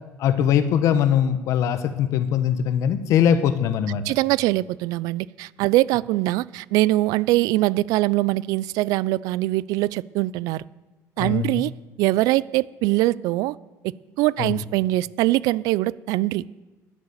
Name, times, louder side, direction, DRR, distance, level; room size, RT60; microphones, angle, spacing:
voice 1, 0.2-4.0 11.2-11.6 14.4-14.6, left 9 dB, 55° left, 12 dB, 1.0 m, -21 dB
voice 2, 4.0-10.6 11.2-11.7 12.0-13.6 13.8-16.4, right 18 dB, 80° right, 21 dB, 0.4 m, -22 dB
12.0 x 9.6 x 8.2 m, 1.1 s
cardioid pair, 165°, 6 cm